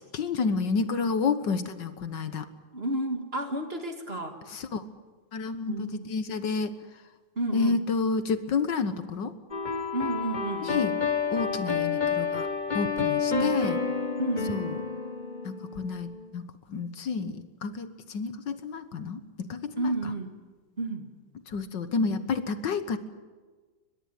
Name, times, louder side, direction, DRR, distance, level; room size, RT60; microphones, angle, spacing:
voice 1, 0.1-2.5 4.5-4.8 5.3-6.7 7.5-9.3 10.6-10.9 11.3-12.5 12.7-13.8 14.5-14.8 15.4-19.9 21.5-23.0, left 4 dB, 65° left, 11 dB, 1.8 m, -30 dB
voice 2, 2.7-4.4 5.7-6.1 7.4-7.8 9.9-10.9 13.3-13.6 14.2-14.5 19.8-20.4 20.8-21.1, right 2 dB, 30° right, 5 dB, 2.1 m, -31 dB
sound 1, 9.5-16.3, left 6 dB, 25° left, 1.4 m, -30 dB
23.0 x 21.0 x 9.4 m, 1.4 s
omnidirectional pair, 2.1 m